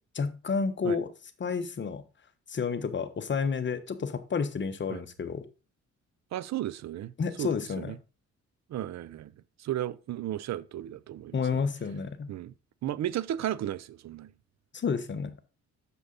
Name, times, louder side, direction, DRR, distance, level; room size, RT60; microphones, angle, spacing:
voice 1, 0.1-1.1 1.4-2.0 2.5-5.4 7.2-7.9 11.3-12.3 14.7-15.3, left 5 dB, 40° left, 1.1 m, -30 dB
voice 2, 6.3-7.1 7.4-7.5 7.8-8.0 8.7-9.3 9.6-11.6 12.3-12.5 12.8-14.3, right 12 dB, 60° right, 0.6 m, -34 dB
8.1 x 6.9 x 4.0 m
cardioid pair, 90°, 30 cm